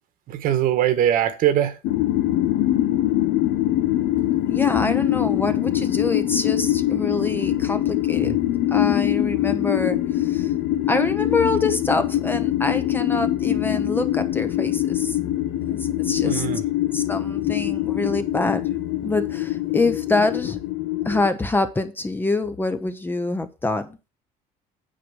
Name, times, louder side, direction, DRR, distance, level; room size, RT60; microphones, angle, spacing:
voice 1, 0.3-1.8 8.2-8.4 16.2-16.6, right 11 dB, 60° right, 1.4 m, -21 dB
sound 1, 1.8-21.3, left 13 dB, 80° left, 1.2 m, -23 dB
voice 2, 4.5-8.4 8.7-10.5 10.9-15.2 15.7-16.5 16.9-18.6 19.0-20.6 21.0-24.0, left 2 dB, 10° left, 0.8 m, -25 dB
9.3 x 4.8 x 6.3 m
cardioid pair, 125°, 16 cm